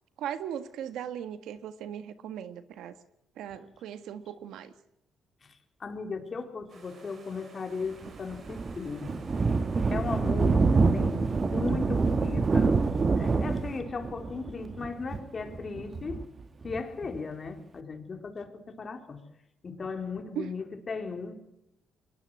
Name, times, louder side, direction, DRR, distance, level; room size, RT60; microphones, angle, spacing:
voice 1, 0.2-2.9 3.4-4.7 20.3-20.5, right 9 dB, 85° right, 11 dB, 1.6 m, -38 dB
voice 2, 5.4-9.1 9.9-12.8 13.2-16.2 16.6-19.2 19.6-21.3, left 4 dB, 40° left, 5 dB, 4.2 m, -37 dB
sound 1, 6.7-13.8, right 4 dB, 55° right, 7.0 m, -55 dB
Thunder, 8.0-17.2, right 4 dB, 35° right, 1.4 m, -27 dB
23.0 x 20.0 x 7.8 m, 0.83 s
cardioid pair, 90°, 0 cm